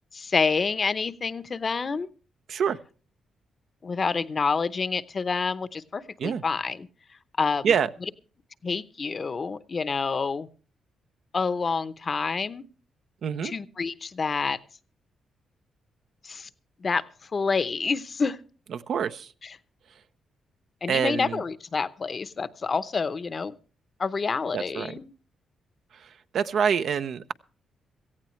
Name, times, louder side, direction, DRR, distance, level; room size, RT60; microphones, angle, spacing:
voice 1, 0.1-2.1 3.8-6.9 7.4-7.7 8.6-10.5 11.3-12.6 13.4-14.6 16.2-16.5 16.8-17.0 17.3-18.4 19.4-19.6 20.8-23.5 24.0-25.1, left 4 dB, 40° left, 14 dB, 0.8 m, -28 dB
voice 2, 13.2-13.5 18.9-19.3 20.9-21.4 24.5-24.9 26.3-27.3, right 7 dB, 70° right, 11 dB, 0.7 m, -25 dB
17.5 x 15.0 x 3.1 m, 0.38 s
cardioid pair, 75°, 0 cm